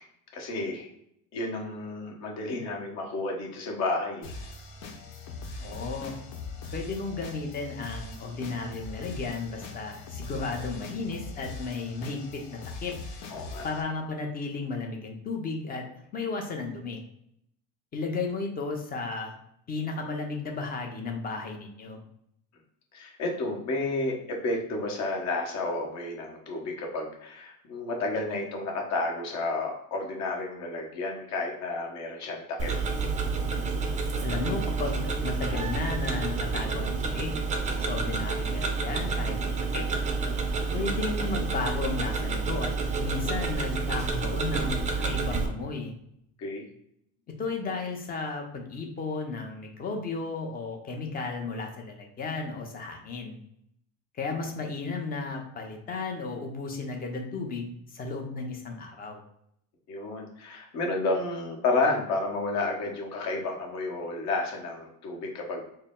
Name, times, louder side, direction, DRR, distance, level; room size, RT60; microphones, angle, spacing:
voice 1, 0.3-0.9 1.3-4.3 13.3-13.7 22.9-32.7 46.4-46.6 59.9-65.7, left 2 dB, 50° left, 1 dB, 1.1 m, -31 dB
sound 1, 4.2-13.8, left 3 dB, 90° left, 0.9 m, -41 dB
voice 2, 5.6-6.2 6.7-13.0 13.6-17.0 17.9-19.3 19.7-22.0 34.2-37.4 37.8-39.9 40.7-42.7 43.0-45.9 47.4-53.4 54.2-59.2, left 3 dB, 25° left, 3 dB, 0.6 m, -34 dB
Tick-tock, 32.6-45.5, right 4 dB, 20° right, 0.4 m, -29 dB
4.4 x 2.0 x 3.7 m, 0.72 s
cardioid pair, 160°, 34 cm